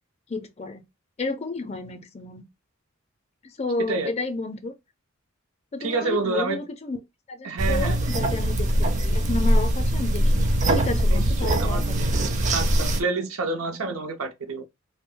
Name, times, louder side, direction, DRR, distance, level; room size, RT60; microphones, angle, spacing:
voice 1, 0.3-0.8 1.2-2.5 3.4-4.7 5.7-7.0 7.3-8.7 9.0-12.2, left 3 dB, 30° left, 0.4 m, -32 dB
voice 2, 5.8-6.6 7.4-8.0 11.1-11.8 12.5-14.6, right 3 dB, 90° right, 0.6 m, -28 dB
sound 1, 7.6-13.0, right 1 dB, 35° right, 0.4 m, -22 dB
2.2 x 2.1 x 3.7 m
head